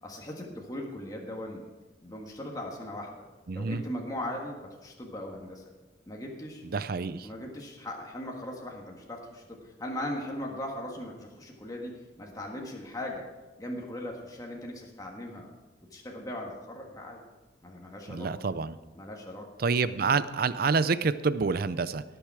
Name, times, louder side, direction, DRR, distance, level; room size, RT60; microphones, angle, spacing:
voice 1, 0.0-1.6 2.0-3.1 3.5-5.6 6.1-6.6 7.2-11.9 12.2-13.2 13.6-15.5 15.9-17.2 17.6-18.3 18.9-19.5, left 1 dB, 20° left, -1 dB, 1.5 m, -39 dB
voice 2, 3.5-3.8 6.7-7.3 18.1-18.8 19.6-22.0, right 4 dB, 55° right, 14 dB, 0.5 m, -27 dB
18.0 x 6.8 x 4.8 m, 1.1 s
head